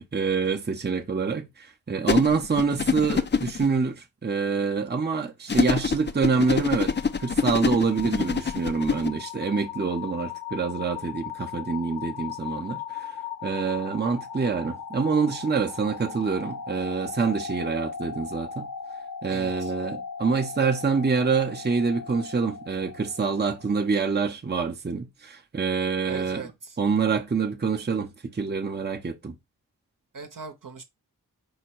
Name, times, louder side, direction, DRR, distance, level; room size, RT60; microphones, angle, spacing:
voice 1, 0.1-6.9 7.2-13.2 13.4-18.7 19.2-26.5 26.8-29.4, right 5 dB, 25° right, 0.7 m, -26 dB
sound 1, 2.1-3.7 5.5-9.1, left 6 dB, 30° left, 0.5 m, -25 dB
sound 2, 6.0-23.9, left 7 dB, 60° left, 0.8 m, -38 dB
voice 2, 19.3-19.7 26.1-26.8 30.1-30.8, right 5 dB, 60° right, 0.9 m, -39 dB
4.8 x 2.2 x 4.4 m
cardioid pair, 40°, 37 cm